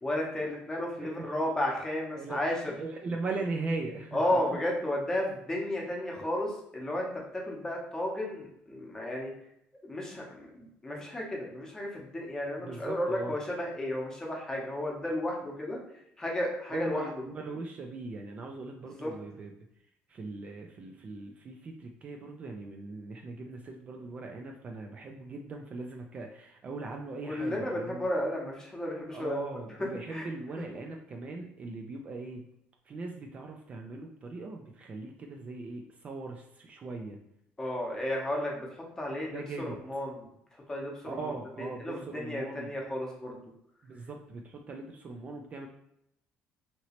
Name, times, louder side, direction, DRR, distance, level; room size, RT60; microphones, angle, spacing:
voice 1, 0.0-2.7 4.1-9.3 9.8-17.3 19.0-19.1 27.3-29.4 29.8-30.3 37.6-41.2 41.6-43.4, left 1 dB, 15° left, -1 dB, 0.8 m, -33 dB
voice 2, 2.8-4.2 12.6-13.3 16.7-19.5 20.1-28.1 29.1-32.5 32.9-37.2 39.3-39.8 41.1-42.7 43.8-45.7, right 3 dB, 35° right, 2 dB, 0.3 m, -39 dB
3.0 x 2.9 x 2.9 m, 0.77 s
cardioid pair, 130°, 4 cm